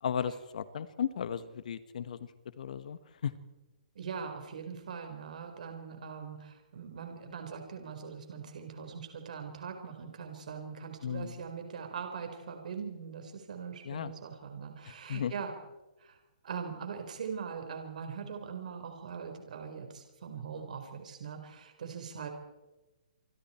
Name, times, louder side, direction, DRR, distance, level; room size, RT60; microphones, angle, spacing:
voice 1, 0.0-2.3 2.6-3.3 11.0-11.4 13.8-14.1 15.1-15.3, left 8 dB, 65° left, 12 dB, 1.5 m, -35 dB
voice 2, 3.9-15.5 16.0-16.2 16.4-22.3, right 6 dB, 65° right, 5 dB, 4.6 m, -41 dB
27.0 x 25.0 x 4.5 m, 1.1 s
hypercardioid pair, 140°, 4 cm